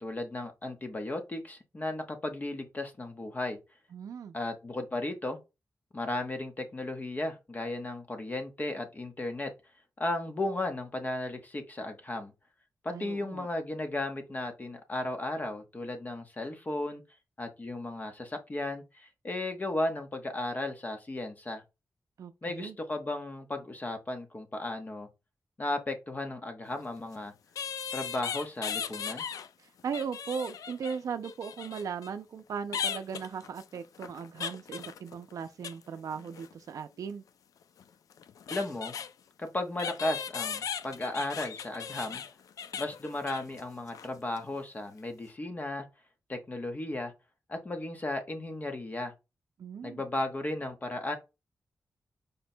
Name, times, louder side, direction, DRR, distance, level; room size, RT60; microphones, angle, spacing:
voice 1, 0.0-3.6 4.3-5.4 5.9-9.5 10.0-12.3 12.8-17.0 17.4-21.6 22.4-25.1 25.6-27.3 27.9-29.3 38.5-38.9 39.4-42.2 42.8-45.8 46.3-47.1 47.5-49.1 49.8-51.2, left 2 dB, 30° left, 0.8 m, -35 dB
voice 2, 3.9-4.4 12.9-13.5 22.2-22.8 29.6-37.2 49.6-50.0, right 6 dB, 75° right, 0.4 m, -38 dB
sound 1, 26.7-26.8 27.6-29.5 29.8-32.1 32.7-35.8 36.1-36.5 37.8-37.9 38.1-39.1 39.8-43.6 43.9-44.1 44.4-44.5, left 7 dB, 85° left, 0.3 m, -38 dB
5.1 x 2.2 x 4.2 m
wide cardioid pair, 120°, 6 cm